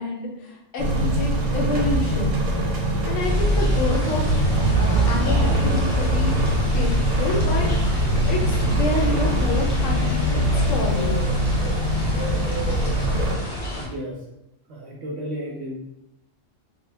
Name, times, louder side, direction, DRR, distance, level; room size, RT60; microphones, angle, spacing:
voice 1, 0.0-2.4 3.0-4.5 4.8-6.4 6.7-7.7 8.3-10.3 10.5-11.3, left 2 dB, 75° left, 0 dB, 0.9 m, -28 dB
sound 1, 0.8-13.4, equal, 90° right, 1.0 m, -23 dB
sound 2, 3.2-13.9, equal, 40° left, 0.6 m, -25 dB
voice 2, 13.8-14.2 14.7-15.8, equal, 65° right, -2 dB, 0.7 m, -33 dB
2.2 x 2.1 x 3.1 m, 0.86 s
omnidirectional pair, 1.3 m